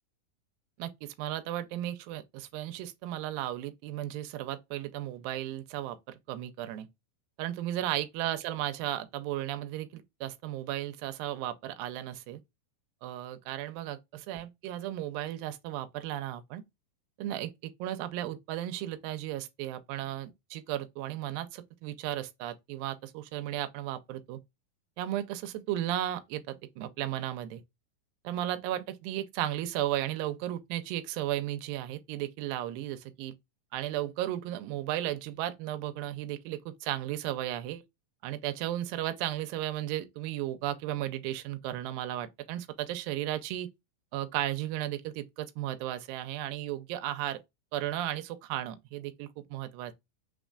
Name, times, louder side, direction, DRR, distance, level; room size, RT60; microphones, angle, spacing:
voice 1, 0.8-6.9 7.4-12.4 13.0-16.6 17.2-24.4 25.0-27.6 28.2-33.3 33.7-37.8 38.2-43.7 44.1-47.4 47.7-49.9, right 13 dB, 85° right, 2.3 m, -35 dB
5.3 x 3.6 x 2.4 m
omnidirectional pair, 4.1 m